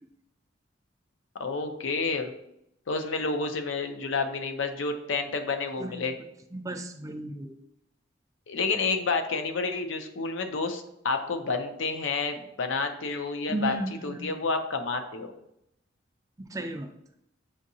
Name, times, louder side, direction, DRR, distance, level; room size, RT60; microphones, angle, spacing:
voice 1, 1.4-2.3 2.9-6.1 8.5-13.8 14.0-15.3, left 4 dB, 75° left, 7 dB, 0.6 m, -29 dB
voice 2, 6.5-7.5 13.5-14.3 16.4-16.9, right 2 dB, 15° right, 6 dB, 0.4 m, -34 dB
7.2 x 2.7 x 2.7 m, 0.79 s
head